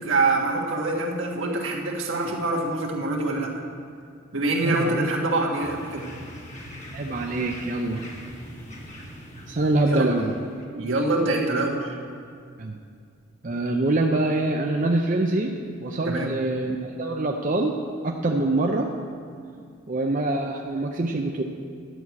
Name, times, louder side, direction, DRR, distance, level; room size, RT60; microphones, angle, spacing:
voice 1, 0.0-3.5 4.3-6.1 9.8-10.1 10.7-12.0 16.0-16.4, right 2 dB, 75° right, -1 dB, 1.5 m, -25 dB
voice 2, 4.6-5.1 6.9-8.0 9.5-10.3 12.6-12.7 13.4-15.5 15.8-17.8 18.0-18.9 19.9-21.4, right 2 dB, 40° right, 1 dB, 0.5 m, -24 dB
sound 1, 5.6-10.7, equal, 35° left, 1.5 m, -41 dB
11.0 x 6.2 x 8.3 m, 2.2 s
head